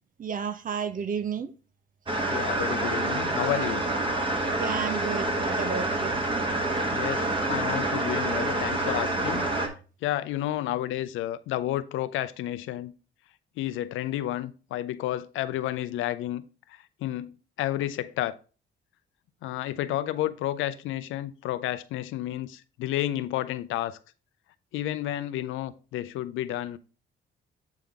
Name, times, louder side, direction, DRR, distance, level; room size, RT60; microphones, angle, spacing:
voice 1, 0.2-1.5 4.5-6.2, right 6 dB, 45° right, 0.7 m, -32 dB
sound 1, 2.1-9.7, right 2 dB, 25° right, 1.3 m, -27 dB
voice 2, 2.3-3.8 6.9-9.5 10.0-12.9 13.6-16.4 17.0-18.3 19.4-24.0 24.7-26.8, left 13 dB, 85° left, 0.5 m, -31 dB
8.3 x 3.8 x 3.4 m
cardioid pair, 90°, 20 cm